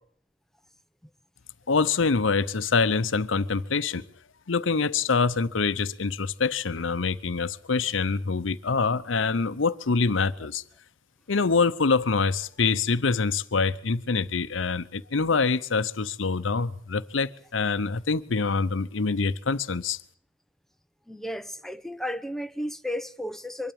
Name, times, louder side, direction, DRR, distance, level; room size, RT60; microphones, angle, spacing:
voice 1, 1.7-4.1 4.5-10.6 11.3-20.0, left 4 dB, 70° left, 0.8 m, -25 dB
voice 2, 21.1-23.7, left 1 dB, ahead, 0.8 m, -33 dB
24.0 x 12.5 x 8.7 m
head